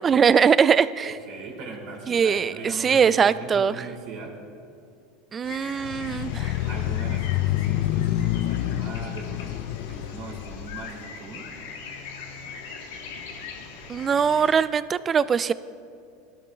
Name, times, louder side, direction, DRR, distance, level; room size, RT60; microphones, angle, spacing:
voice 1, 0.0-1.2 2.1-2.5 2.8-3.9 5.3-6.6 13.9-15.5, right 6 dB, 25° right, 16 dB, 0.3 m, -21 dB
voice 2, 1.0-4.4 6.6-11.5, right 3 dB, 60° right, -2 dB, 2.8 m, -40 dB
sound 1, 5.4-14.6, left 5 dB, 80° left, 1.4 m, -41 dB
sound 2, 5.8-10.8, left 14 dB, 65° left, 0.3 m, -27 dB
17.5 x 12.5 x 2.4 m, 2.4 s
supercardioid pair, 110°, 0 cm